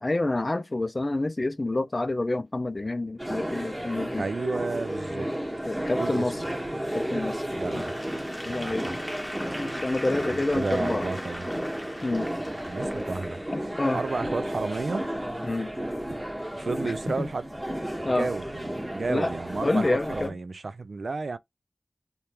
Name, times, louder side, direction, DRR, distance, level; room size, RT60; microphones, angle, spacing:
voice 1, 0.0-4.3 5.6-6.4 6.9-7.5 7.8-7.9 8.4-8.9 9.6-11.1 12.0-12.3 13.5-14.0 15.4-15.7 16.8-17.3 18.0-18.3 19.1-19.3 19.6-20.4, left 2 dB, 40° left, 0.4 m, -28 dB
sound 1, 3.2-20.3, equal, 15° right, 1.2 m, -33 dB
voice 2, 4.2-5.3 5.8-6.5 7.6-8.0 8.5-9.0 10.1-11.5 12.7-13.4 13.9-15.1 16.5-17.5 18.1-21.4, right 3 dB, 75° right, 0.3 m, -32 dB
Applause / Crowd, 7.6-14.0, equal, 5° left, 0.9 m, -40 dB
3.3 x 2.2 x 2.8 m
wide cardioid pair, 80°, 0 cm